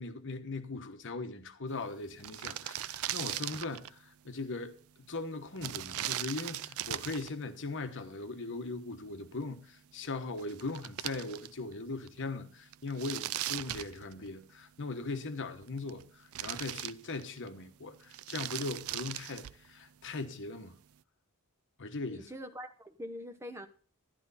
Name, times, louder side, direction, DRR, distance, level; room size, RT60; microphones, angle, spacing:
voice 1, 0.0-4.8 5.1-20.8 21.8-22.3, left 3 dB, 55° left, 1.2 m, -39 dB
sound 1, 1.8-1.9 2.1-4.0 5.6-7.3 10.0-10.1 10.4-11.7 12.1-12.2 12.7-14.5 15.5-16.0 16.3-17.5 18.0-19.7, right 13 dB, 70° right, 0.4 m, -39 dB
voice 2, 22.1-23.7, equal, 10° right, 1.1 m, -44 dB
12.0 x 11.0 x 4.1 m
head